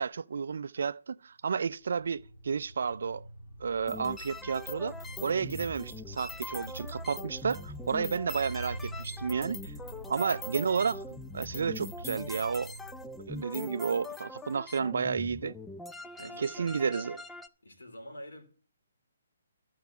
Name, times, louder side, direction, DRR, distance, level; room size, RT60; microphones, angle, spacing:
voice 1, 0.0-3.3 3.6-9.7 10.1-11.0 11.3-12.7 13.3-15.6 16.4-17.2, right 6 dB, 70° right, 0.4 m, -31 dB
sound 1, 1.8-14.4, right 1 dB, 40° left, 2.8 m, -45 dB
sound 2, 3.9-17.5, left 3 dB, 5° left, 0.4 m, -43 dB
voice 2, 16.2-17.1 17.6-18.4, equal, 80° left, 3.0 m, -45 dB
13.5 x 4.6 x 7.2 m
hypercardioid pair, 145°, 0 cm